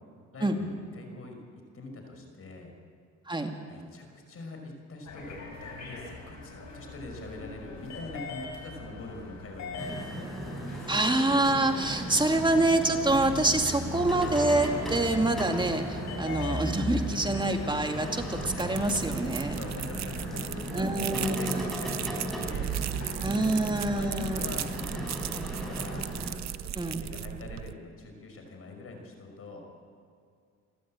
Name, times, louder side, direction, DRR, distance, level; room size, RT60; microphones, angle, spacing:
voice 1, 0.3-1.4 1.7-2.7 3.7-10.3 19.4-23.1 23.4-26.1 26.6-29.6, left 2 dB, 50° left, 3 dB, 5.6 m, -43 dB
sound 1, 5.1-24.8, left 2 dB, 65° left, 6.3 m, -40 dB
sound 2, 9.8-26.4, right 1 dB, ahead, 5.8 m, -37 dB
voice 2, 10.9-19.6 20.7-21.6 23.2-24.5 26.8-27.0, right 2 dB, 15° right, 4 dB, 2.4 m, -26 dB
sound 3, 18.4-27.7, right 11 dB, 60° right, 0.8 m, -37 dB
29.0 x 13.0 x 8.9 m, 2.2 s
cardioid pair, 90°, 30 cm